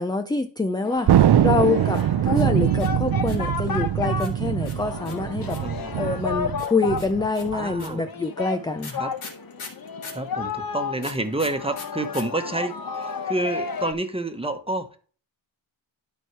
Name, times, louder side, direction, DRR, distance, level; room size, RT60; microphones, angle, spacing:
voice 1, 0.0-5.6 6.0-9.0, left 3 dB, 10° left, 0.4 m, -26 dB
Singing, 0.8-13.9, left 6 dB, 45° left, 1.1 m, -33 dB
Thunder, 1.1-7.9, right 11 dB, 55° right, 0.6 m, -23 dB
sound 1, 1.9-3.6 4.2-5.8 6.6-10.3 11.0-12.2 12.5-12.6 12.8-13.3, left 4 dB, 85° left, 3.1 m, -41 dB
voice 2, 5.6-6.0 7.5-8.1 9.0-9.1 10.1-15.0, right 2 dB, 10° right, 1.2 m, -29 dB
12.0 x 4.6 x 4.7 m
wide cardioid pair, 115°, 48 cm